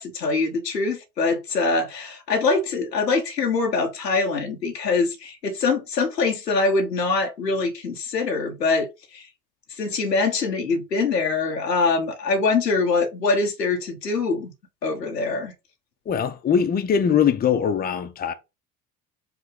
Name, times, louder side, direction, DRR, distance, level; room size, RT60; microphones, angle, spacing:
voice 1, 0.0-9.3 9.7-14.5 14.8-15.5, left 4 dB, 90° left, 0.8 m, -24 dB
voice 2, 16.1-18.3, left 7 dB, 20° left, 0.6 m, -21 dB
4.8 x 2.0 x 4.7 m
figure-of-eight pair, 65°, 48 cm